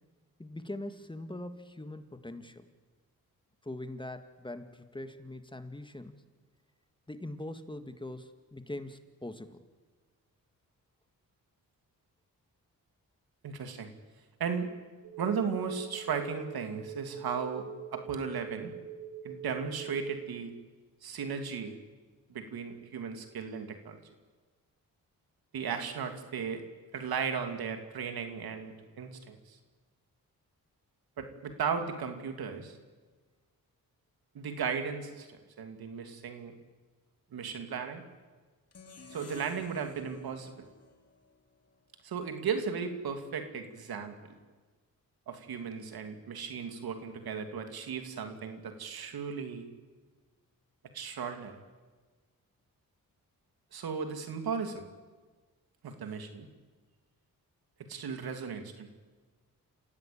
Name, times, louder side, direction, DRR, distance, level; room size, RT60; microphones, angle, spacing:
voice 1, 0.4-2.7 3.6-6.2 7.1-9.6, left 1 dB, 15° left, 9 dB, 1.8 m, -42 dB
voice 2, 13.4-13.9 14.4-14.7 15.2-18.7 19.2-20.5 21.0-21.8 22.3-24.0 25.5-26.6 26.9-29.6 31.2-32.8 34.3-36.6 37.3-38.0 39.1-40.5 42.0-44.4 45.3-49.7 50.9-51.6 53.7-54.8 55.8-56.5 57.9-58.9, right 6 dB, 85° right, 6 dB, 2.8 m, -36 dB
sound 1, 15.0-20.3, right 8 dB, 60° right, 2.5 m, -44 dB
sound 2, 38.7-41.9, left 4 dB, 40° left, 3.0 m, -54 dB
29.0 x 16.0 x 8.8 m, 1.4 s
cardioid pair, 75°, 36 cm